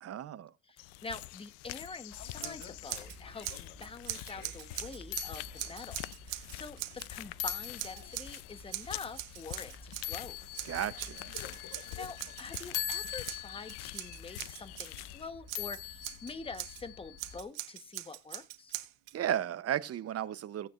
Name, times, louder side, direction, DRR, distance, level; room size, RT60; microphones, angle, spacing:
voice 1, 0.0-0.5 10.6-11.4 19.1-20.7, right 11 dB, 40° right, 0.8 m, -34 dB
voice 2, 0.7-6.0 6.2-10.4 12.0-18.7, left 4 dB, 15° left, 1.1 m, -46 dB
sound 1, 0.8-15.3, left 18 dB, 80° left, 0.6 m, -47 dB
sound 2, 2.1-17.4, left 10 dB, 55° left, 1.8 m, -44 dB
Scissors, 2.4-3.2 3.4-7.1 7.4-8.4 8.7-10.2 10.5-15.0 15.5-16.8 17.2-19.1, right 18 dB, 90° right, 1.5 m, -42 dB
17.0 x 9.2 x 2.5 m
cardioid pair, 110°, 38 cm